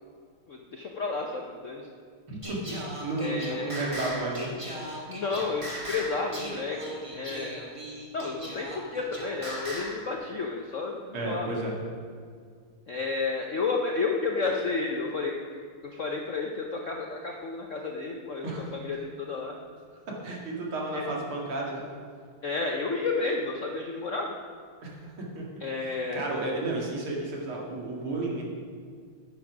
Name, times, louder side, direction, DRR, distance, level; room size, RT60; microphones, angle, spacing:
voice 1, 0.5-1.9 3.2-3.7 5.1-7.7 8.1-11.5 12.9-18.4 18.7-19.5 20.9-21.0 22.4-24.3 25.6-26.3, left 4 dB, 65° left, 1 dB, 0.7 m, -31 dB
voice 2, 2.3-4.5 11.1-11.8 18.4-18.7 20.1-21.9 24.8-28.4, right 2 dB, 80° right, -2 dB, 2.9 m, -33 dB
Singing, 2.4-10.0, equal, 15° right, 1.7 m, -38 dB
9.4 x 8.8 x 6.0 m, 2.1 s
omnidirectional pair, 2.3 m